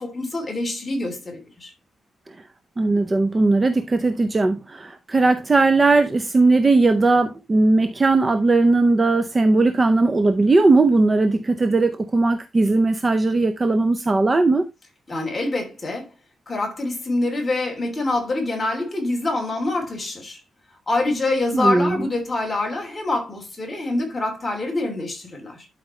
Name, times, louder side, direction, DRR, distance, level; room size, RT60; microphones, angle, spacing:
voice 1, 0.0-1.7 15.1-16.1 16.5-20.4 20.9-25.7, left 2 dB, 15° left, 3.1 m, -25 dB
voice 2, 2.8-14.6 21.5-22.0, right 3 dB, 20° right, 0.6 m, -18 dB
12.0 x 5.1 x 3.2 m
wide cardioid pair, 170°, 0 cm